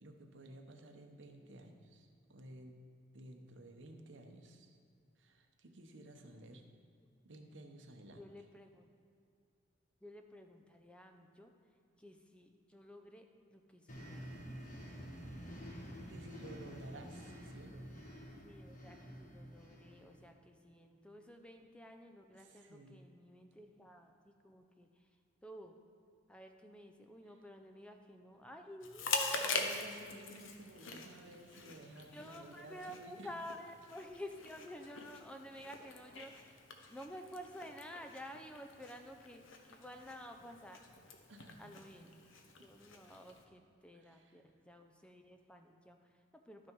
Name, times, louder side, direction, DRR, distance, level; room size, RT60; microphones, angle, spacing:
voice 1, 0.0-2.8 3.1-4.8 5.2-6.7 7.2-8.3 16.1-18.0 22.3-23.1 29.4-33.3 41.3-42.1 43.9-44.4, right 1 dB, 70° right, 4 dB, 0.9 m, -54 dB
voice 2, 8.2-8.9 10.0-11.5 12.0-14.2 17.0-17.1 18.4-25.1 25.4-25.8 26.3-29.6 31.5-31.7 32.1-36.6 36.9-40.8 41.6-42.1 42.6-46.7, equal, 5° left, 4 dB, 0.5 m, -51 dB
sound 1, 13.9-20.3, equal, 40° left, 1.2 m, -49 dB
Chewing mastication, 28.8-43.4, left 4 dB, 75° left, 0.9 m, -44 dB
12.0 x 6.1 x 4.6 m, 2.4 s
head